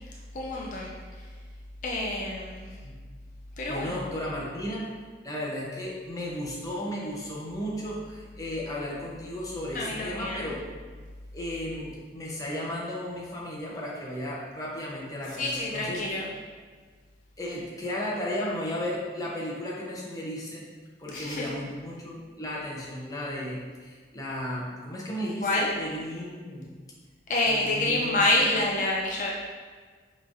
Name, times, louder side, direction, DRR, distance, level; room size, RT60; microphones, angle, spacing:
voice 1, 0.3-0.9 1.8-2.7 3.6-4.0 9.7-10.5 15.4-16.3 21.1-21.4 25.4-25.7 27.3-29.3, left 2 dB, 45° left, -3 dB, 0.5 m, -27 dB
voice 2, 3.7-4.9 5.2-10.6 11.3-16.2 17.4-20.6 21.0-26.7 27.5-28.7, left 1 dB, 20° left, -4 dB, 0.8 m, -34 dB
5.6 x 3.2 x 2.6 m, 1.5 s
head